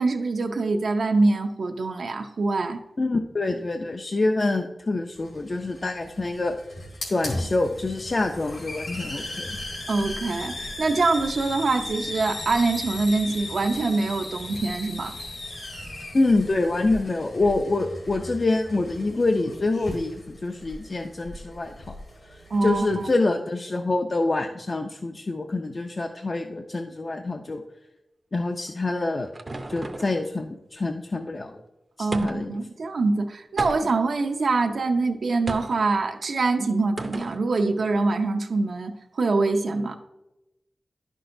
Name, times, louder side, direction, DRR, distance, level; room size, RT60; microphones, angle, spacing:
voice 1, 0.0-2.8 9.9-15.2 22.5-23.1 32.0-40.0, right 3 dB, 80° right, 4 dB, 0.6 m, -24 dB
voice 2, 3.0-6.6 7.1-9.6 16.1-21.9 22.3-27.6 28.3-29.3 29.7-31.5 32.0-32.6, left 2 dB, 40° left, 4 dB, 0.4 m, -26 dB
Hiss, 5.2-23.1, left 1 dB, 75° left, 2.2 m, -37 dB
sound 1, 28.7-30.2 32.1-32.6 33.6-34.1 35.5-35.8 37.0-37.4, right 2 dB, 35° right, 0.5 m, -34 dB
11.0 x 6.0 x 2.6 m, 0.95 s
wide cardioid pair, 105°, 0 cm